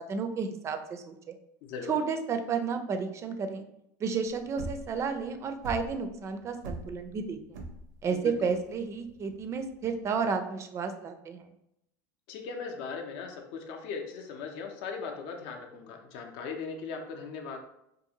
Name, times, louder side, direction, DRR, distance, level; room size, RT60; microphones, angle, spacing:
voice 1, 0.0-1.4 1.9-3.6 4.0-7.6 8.0-11.4, right 5 dB, 30° right, 7 dB, 0.4 m, -32 dB
voice 2, 1.6-2.0 8.1-8.3 12.3-17.6, left 5 dB, 65° left, 3 dB, 0.5 m, -38 dB
sound 1, 4.3-10.2, right 2 dB, 85° right, 0.6 m, -42 dB
2.6 x 2.5 x 2.7 m, 0.80 s
supercardioid pair, 105°, 9 cm